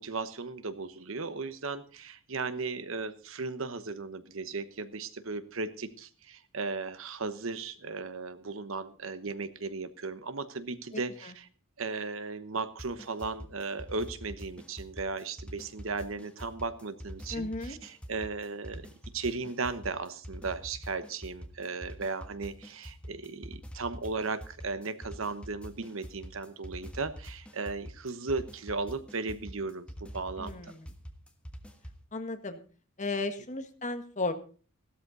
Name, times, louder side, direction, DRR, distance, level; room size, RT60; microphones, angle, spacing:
voice 1, 0.0-11.5 11.8-18.9 19.1-30.7, right 3 dB, 70° right, 12 dB, 1.1 m, -36 dB
sound 1, 12.8-32.0, equal, 5° left, 1.5 m, -45 dB
voice 2, 17.3-17.8 30.4-30.8 32.1-32.6 33.0-34.3, left 2 dB, 35° left, 7 dB, 1.5 m, -34 dB
15.5 x 13.0 x 4.1 m, 0.37 s
head